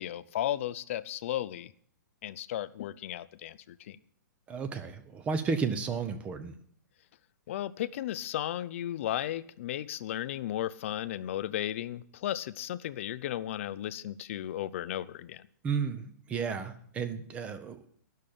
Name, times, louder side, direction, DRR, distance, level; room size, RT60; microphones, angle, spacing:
voice 1, 0.0-1.7 2.2-4.0 7.5-15.4, left 12 dB, 40° left, 14 dB, 0.5 m, -35 dB
voice 2, 4.5-6.6 15.6-17.9, right 5 dB, 10° right, 10 dB, 0.7 m, -33 dB
11.0 x 6.5 x 8.5 m, 0.63 s
hypercardioid pair, 165°, 10 cm